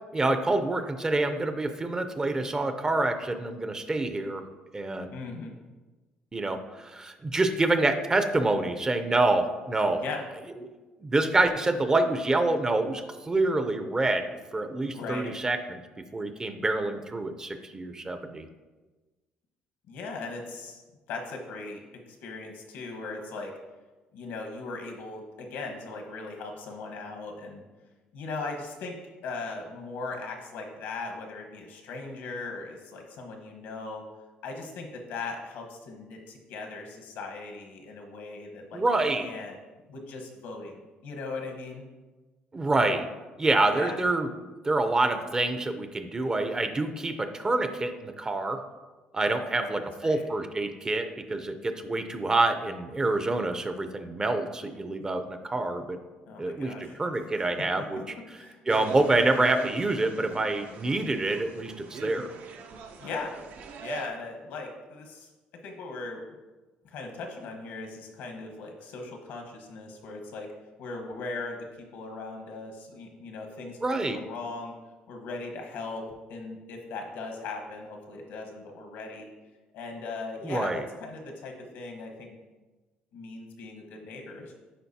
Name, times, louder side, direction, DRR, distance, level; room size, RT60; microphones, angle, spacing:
voice 1, 0.1-4.5 4.7-5.2 6.3-10.0 10.6-10.7 11.0-18.5 38.7-39.3 42.5-43.1 43.4-44.3 44.6-48.6 49.1-56.0 56.4-58.0 58.7-62.3 73.8-74.2 80.4-80.9, right 2 dB, 20° right, 8 dB, 0.5 m, -27 dB
voice 2, 5.1-5.6 10.0-10.2 14.9-15.3 19.9-20.8 21.1-21.8 22.1-23.5 24.1-27.6 28.1-29.0 29.2-34.0 34.4-38.8 39.2-39.6 39.9-41.8 43.7-44.0 49.5-49.8 50.0-50.2 56.3-56.9 57.3-57.5 57.8-58.0 58.3-58.6 63.0-63.3 63.8-65.3 65.6-66.2 66.8-70.5 70.8-71.6 71.9-73.8 74.1-74.7 75.1-76.0 76.3-79.3 79.7-82.4 83.1-84.5, left 3 dB, 85° left, 3 dB, 1.1 m, -38 dB
sound 1, 58.7-64.1, right 5 dB, 65° right, 0.6 m, -42 dB
10.0 x 4.0 x 2.8 m, 1.2 s
cardioid pair, 105°, 3 cm